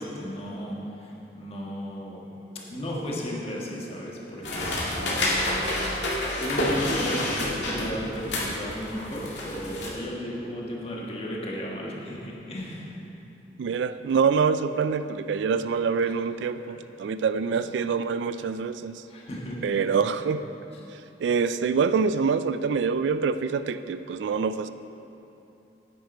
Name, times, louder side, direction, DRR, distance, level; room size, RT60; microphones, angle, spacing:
voice 1, 0.0-2.3 2.7-5.7 6.4-12.9 19.1-19.9 20.7-20.8, equal, 35° left, -3 dB, 1.5 m, -34 dB
sound 1, 4.4-9.9, left 1 dB, 80° left, 2.0 m, -28 dB
voice 2, 13.6-19.0 19.6-20.4 21.2-24.7, right 5 dB, 75° right, 12 dB, 0.3 m, -25 dB
9.9 x 9.4 x 4.3 m, 2.9 s
head